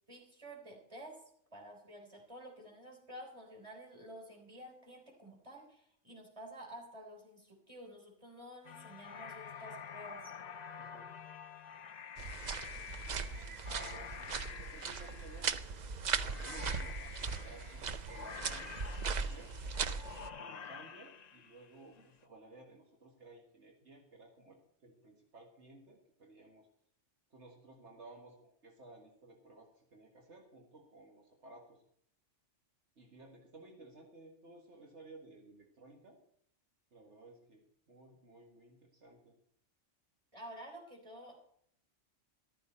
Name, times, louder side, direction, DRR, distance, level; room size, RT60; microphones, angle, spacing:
voice 1, 0.1-1.2 1.5-10.3 40.3-41.4, right 1 dB, 25° right, 1 dB, 3.7 m, -51 dB
sound 1, 8.6-22.0, left 7 dB, 45° left, 0.6 m, -49 dB
voice 2, 10.8-11.1 13.0-15.5 16.2-19.5 20.3-26.7 27.3-31.8 33.0-36.2 36.9-39.4, right 2 dB, 70° right, 1 dB, 2.0 m, -56 dB
sound 2, 12.2-20.3, right 5 dB, 45° right, 0.6 m, -39 dB
14.0 x 13.0 x 4.4 m, 0.67 s
omnidirectional pair, 1.2 m